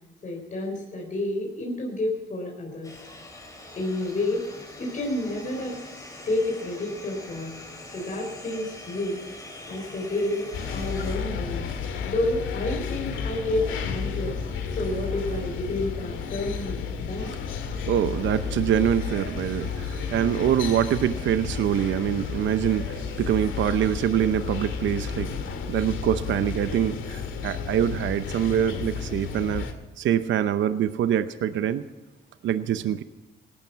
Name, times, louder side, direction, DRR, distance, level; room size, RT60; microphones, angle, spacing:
voice 1, 0.2-2.9 3.8-5.8 6.3-7.5 7.9-9.2 9.7-11.7 12.0-14.4 14.7-17.3, left 1 dB, 40° left, 4.1 m, -30 dB
sound 1, 2.8-11.2, left 2 dB, 15° left, 4.9 m, -43 dB
sound 2, 10.5-29.7, left 6 dB, 80° left, 2.2 m, -32 dB
voice 2, 17.7-29.7 30.0-31.8 32.4-33.0, right 10 dB, 70° right, 0.8 m, -25 dB
18.0 x 12.0 x 5.7 m
cardioid pair, 90°, 20 cm